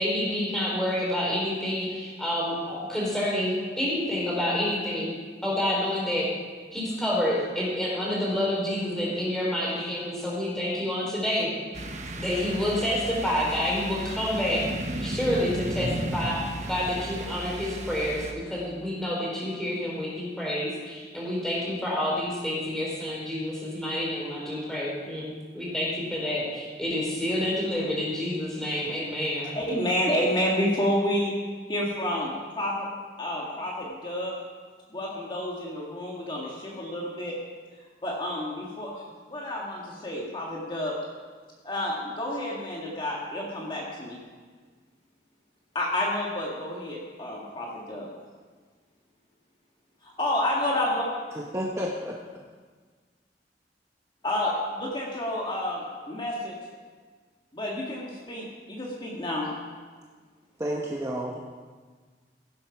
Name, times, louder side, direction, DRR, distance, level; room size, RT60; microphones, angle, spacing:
voice 1, 0.0-5.1 5.4-6.3 6.7-11.5 12.1-14.6 15.0-16.4 16.7-29.5, left 1 dB, 5° left, -5 dB, 3.7 m, -28 dB
sound 1, 11.7-18.3, right 1 dB, 40° right, 1.0 m, -34 dB
voice 2, 29.5-31.3 31.7-32.9 33.2-34.4 34.9-37.4 38.0-39.0 39.3-41.0 41.6-44.2 45.8-48.1 50.0-51.1 54.2-56.6 57.5-59.5, left 1 dB, 25° left, -3 dB, 1.6 m, -29 dB
voice 3, 51.3-52.2 60.6-61.4, equal, 15° right, -2 dB, 1.0 m, -31 dB
15.5 x 7.7 x 5.9 m, 1.5 s
head